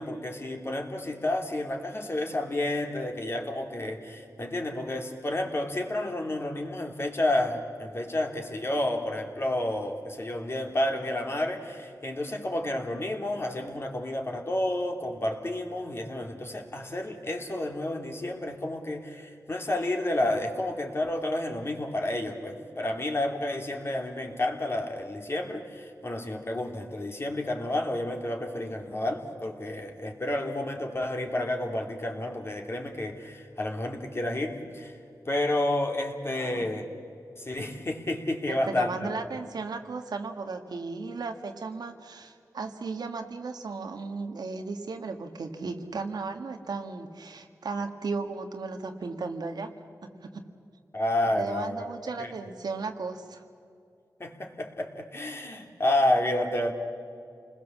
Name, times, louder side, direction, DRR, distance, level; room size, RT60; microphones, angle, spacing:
voice 1, 0.0-34.9 35.3-36.9 37.4-39.1 50.9-51.8 52.2-52.3 54.2-56.7, left 1 dB, 40° left, 3 dB, 2.9 m, -30 dB
voice 2, 36.3-36.7 38.5-49.7 50.0-50.5 51.3-53.4, right 4 dB, 80° right, 5 dB, 1.7 m, -35 dB
28.5 x 20.5 x 7.4 m, 2.4 s
wide cardioid pair, 80°, 7 cm